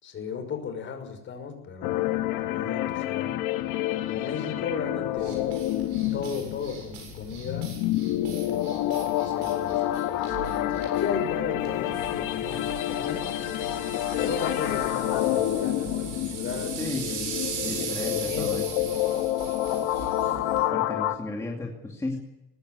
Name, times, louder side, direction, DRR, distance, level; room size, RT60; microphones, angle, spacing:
voice 1, 0.0-2.0 2.4-3.3 4.1-5.5 6.1-7.7 9.2-13.3 14.2-16.9 17.4-17.8 18.2-18.6, left 6 dB, 40° left, 5 dB, 5.7 m, -35 dB
sound 1, 1.8-21.2, left 13 dB, 90° left, 1.6 m, -28 dB
sound 2, 5.1-20.7, right 6 dB, 70° right, 7.7 m, -39 dB
voice 2, 16.8-17.3 17.6-18.7 20.7-22.2, left 2 dB, 10° left, -1 dB, 2.4 m, -34 dB
19.5 x 16.5 x 9.6 m, 0.95 s
cardioid pair, 160°, 31 cm